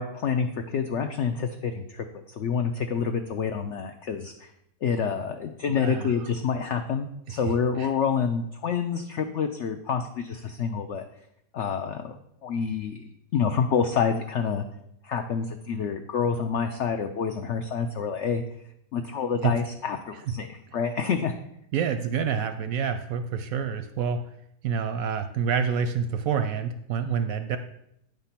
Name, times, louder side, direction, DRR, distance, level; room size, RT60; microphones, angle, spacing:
voice 1, 0.0-4.3 4.8-11.0 11.5-12.1 12.4-14.6 15.0-18.4 18.9-21.3, left 6 dB, 90° left, 6 dB, 0.6 m, -28 dB
voice 2, 5.8-6.3 7.3-7.9 19.4-19.6 20.1-20.3 21.7-24.2 24.6-27.6, right 7 dB, 70° right, 9 dB, 0.8 m, -28 dB
9.1 x 3.7 x 5.7 m, 0.76 s
omnidirectional pair, 1.8 m